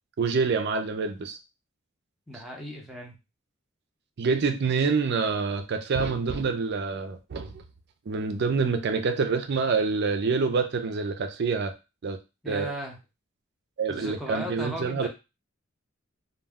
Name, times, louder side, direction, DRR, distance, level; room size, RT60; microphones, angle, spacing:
voice 1, 0.2-1.4 4.2-7.6 8.1-11.7 12.0-12.2 12.5-12.7 13.8-15.1, right 4 dB, 55° right, 0.4 m, -26 dB
voice 2, 2.3-3.1 5.0-5.1 12.4-13.0 13.9-15.1, equal, ahead, 0.6 m, -36 dB
2.2 x 2.2 x 3.4 m
head